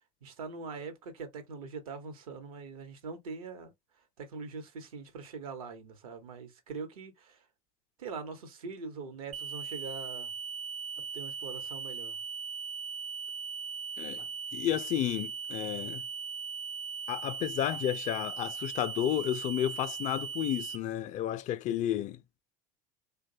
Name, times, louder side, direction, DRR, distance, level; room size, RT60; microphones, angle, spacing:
voice 1, 0.2-3.7 4.2-7.5 8.0-10.3 11.1-12.2, right 4 dB, 80° right, 0.9 m, -42 dB
sound 1, 9.3-20.8, right 6 dB, 40° right, 0.5 m, -39 dB
voice 2, 14.0-14.3 14.5-16.0 17.1-22.2, left 12 dB, 45° left, 0.4 m, -32 dB
3.1 x 2.2 x 2.6 m
hypercardioid pair, 80°, 18 cm